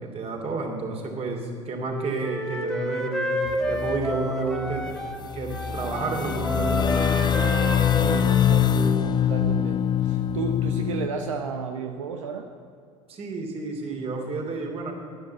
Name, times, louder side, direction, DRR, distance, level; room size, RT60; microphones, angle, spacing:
voice 1, 0.0-3.3 3.7-4.9 5.3-6.8 13.1-14.9, right 3 dB, 40° right, 2 dB, 3.0 m, -30 dB
Wind instrument woodwind instrument, 1.7-5.2 5.5-9.0, equal, 5° left, 1.6 m, -30 dB
sound 1, 3.5-4.2 4.8-4.9 5.1-11.1, left 9 dB, 25° left, 0.6 m, -23 dB
voice 2, 8.0-12.5, right 4 dB, 80° right, 4 dB, 0.8 m, -33 dB
10.5 x 10.0 x 8.0 m, 2.3 s
hypercardioid pair, 70°, 16 cm